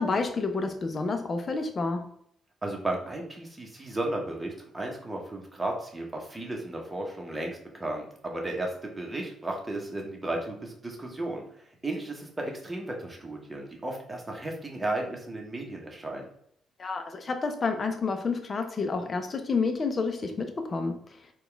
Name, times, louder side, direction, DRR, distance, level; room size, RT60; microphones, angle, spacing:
voice 1, 0.0-2.1 16.8-21.0, left 4 dB, 40° left, 6 dB, 0.6 m, -29 dB
voice 2, 2.6-11.4 11.8-16.2, right 2 dB, 15° right, 0 dB, 1.0 m, -34 dB
4.0 x 2.4 x 3.4 m, 0.68 s
cardioid pair, 90°, 0 cm